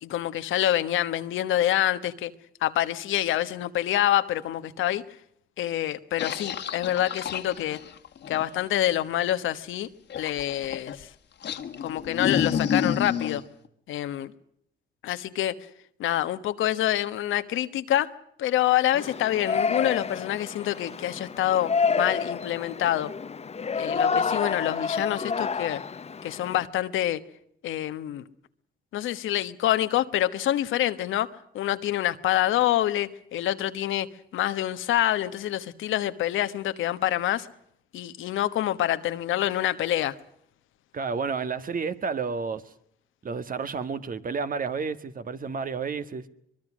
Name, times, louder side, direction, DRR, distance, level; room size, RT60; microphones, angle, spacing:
voice 1, 0.0-2.3 2.6-5.0 5.6-7.8 8.3-9.9 10.2-11.1 11.8-13.4 13.9-14.3 15.0-15.5 16.0-18.1 18.4-23.1 23.8-25.8 26.2-27.2 27.6-28.2 28.9-31.3 31.5-34.1 34.3-37.5 37.9-40.1, left 12 dB, 80° left, 1.3 m, -26 dB
sound 1, 6.2-8.6 10.1-11.0 11.4-13.4, left 8 dB, 60° left, 1.8 m, -29 dB
Yell, 18.9-26.7, left 5 dB, 30° left, 0.9 m, -29 dB
voice 2, 40.9-42.6 43.2-46.2, right 5 dB, 45° right, 1.6 m, -31 dB
24.0 x 22.0 x 6.3 m
cardioid pair, 90°, 20 cm